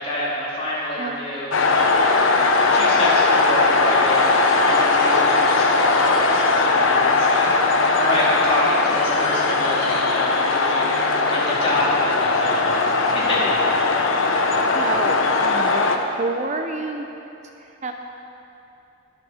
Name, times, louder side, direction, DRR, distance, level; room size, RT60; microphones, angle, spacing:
voice 1, 0.0-2.1 2.7-11.0 11.3-12.6 13.0-13.4, left 1 dB, 30° left, -7 dB, 3.2 m, -27 dB
sound 1, 1.5-16.0, left 3 dB, 80° left, 1.0 m, -19 dB
voice 2, 14.6-15.8 16.2-17.1 17.6-17.9, right 3 dB, 35° right, 4 dB, 0.6 m, -29 dB
21.0 x 8.3 x 4.3 m, 2.8 s
head